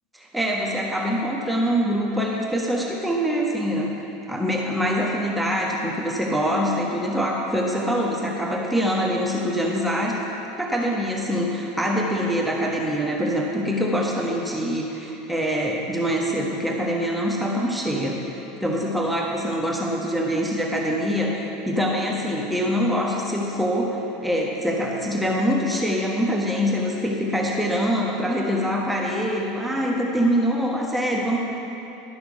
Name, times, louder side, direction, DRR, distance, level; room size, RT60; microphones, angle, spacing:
voice 1, 0.1-3.9 4.3-10.2 10.6-31.4, equal, 5° right, -2 dB, 1.2 m, -24 dB
11.5 x 6.4 x 5.2 m, 2.9 s
figure-of-eight pair, 75°, 0 cm